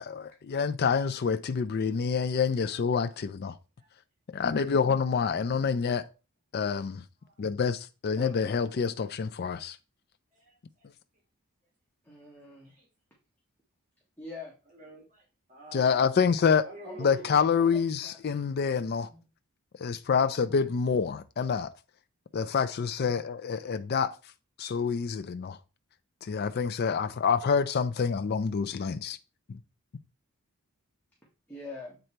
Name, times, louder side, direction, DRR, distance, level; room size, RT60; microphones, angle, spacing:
voice 1, 0.0-3.5 4.3-6.0 6.5-7.0 7.4-9.8 15.7-16.6 17.0-19.1 19.8-21.7 22.3-24.2 24.6-25.6 26.2-29.2 29.5-29.6, left 6 dB, 50° left, 0.4 m, -27 dB
voice 2, 2.3-2.8 3.0-3.2 3.8-3.9 7.2-7.4 10.3-10.9 12.6-12.9 14.7-16.1 16.6-17.3, right 3 dB, 35° right, 2.2 m, -49 dB
voice 3, 5.2-5.7 8.1-8.5 12.0-12.7 14.2-14.5 16.8-18.2 18.9-19.2 31.5-32.0, left 2 dB, 10° left, 1.6 m, -44 dB
8.0 x 4.0 x 4.4 m
head